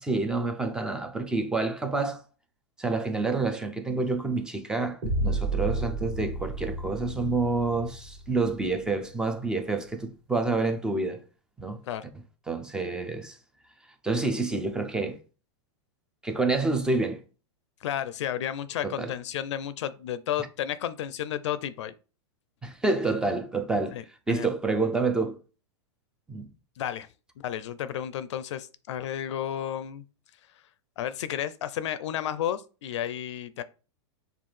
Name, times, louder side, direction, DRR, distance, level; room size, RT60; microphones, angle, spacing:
voice 1, 0.0-2.2 2.8-11.2 11.6-11.8 12.5-13.4 14.0-15.2 16.2-17.2 18.8-19.1 22.6-24.0 24.3-25.4 26.3-26.5, right 3 dB, 5° right, 0.3 m, -28 dB
sound 1, 5.0-9.0, right 2 dB, 20° right, 1.3 m, -31 dB
voice 2, 17.8-21.9 23.9-24.0 24.3-24.5 26.8-27.1 27.4-30.0 31.0-33.6, left 10 dB, 75° left, 0.4 m, -32 dB
5.5 x 2.3 x 3.2 m
supercardioid pair, 150°, 15 cm